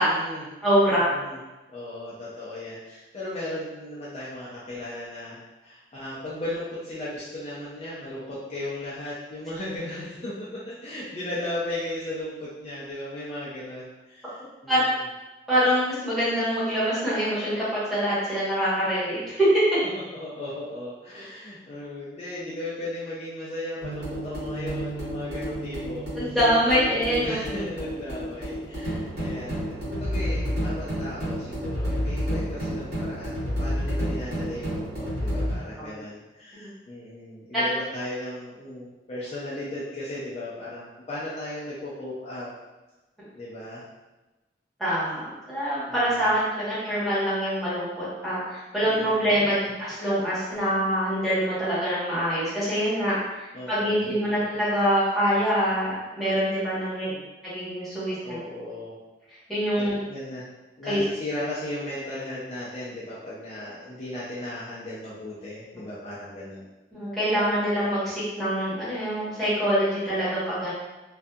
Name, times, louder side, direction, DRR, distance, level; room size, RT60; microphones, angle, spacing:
voice 1, 0.0-0.5 0.8-1.4 1.7-14.9 20.2-26.4 27.2-42.5 43.3-43.8 45.9-46.3 48.8-49.3 53.5-54.1 56.7-57.2 58.1-59.0 59.8-60.5 60.8-66.7, left 1 dB, 35° left, -9 dB, 0.4 m, -36 dB
voice 2, 0.6-1.1 14.7-14.8 15.5-19.5 26.2-27.3 35.8-35.9 36.5-36.7 37.5-37.6 44.8-57.1 57.4-58.4 59.5-60.0 60.9-61.0 66.9-70.7, equal, ahead, -12 dB, 1.0 m, -25 dB
sound 1, 23.8-35.6, equal, 75° right, 1.3 m, -30 dB
2.6 x 2.3 x 2.2 m, 1.1 s
head